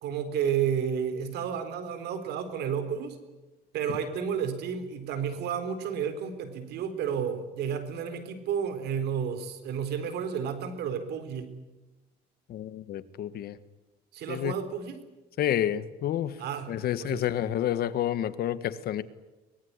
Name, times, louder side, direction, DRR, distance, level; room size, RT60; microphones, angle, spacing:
voice 1, 0.0-3.2 3.7-11.5 14.1-15.0 16.4-16.7 17.0-17.2, right 7 dB, 75° right, 10 dB, 4.0 m, -31 dB
voice 2, 12.5-13.6 14.3-14.5 15.4-16.4 16.7-19.0, left 11 dB, 65° left, 14 dB, 1.6 m, -29 dB
24.0 x 20.5 x 9.8 m, 1.1 s
cardioid pair, 110°, 17 cm